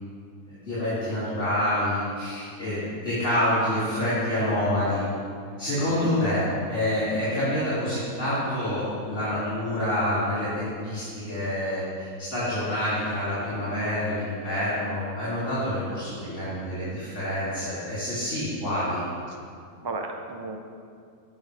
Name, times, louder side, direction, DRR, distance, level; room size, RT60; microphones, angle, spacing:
voice 1, 0.5-5.0 5.6-6.4 6.7-19.0, left 1 dB, 50° left, -12 dB, 3.3 m, -27 dB
voice 2, 6.0-6.3 19.3-19.4 19.8-20.6, right 2 dB, 30° right, 3 dB, 0.4 m, -34 dB
16.0 x 6.3 x 3.5 m, 2.3 s
omnidirectional pair, 1.6 m